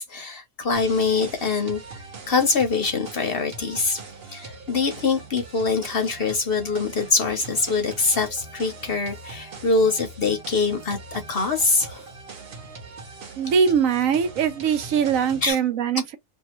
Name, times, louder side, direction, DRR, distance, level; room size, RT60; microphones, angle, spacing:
voice 1, 0.0-1.8 2.3-4.0 4.3-12.1 15.4-15.6, left 4 dB, 50° left, 0.8 m, -24 dB
sound 1, 0.7-15.5, right 3 dB, 50° right, 1.0 m, -41 dB
voice 2, 13.4-16.2, right 7 dB, 70° right, 1.0 m, -22 dB
2.7 x 2.4 x 2.9 m
omnidirectional pair, 1.5 m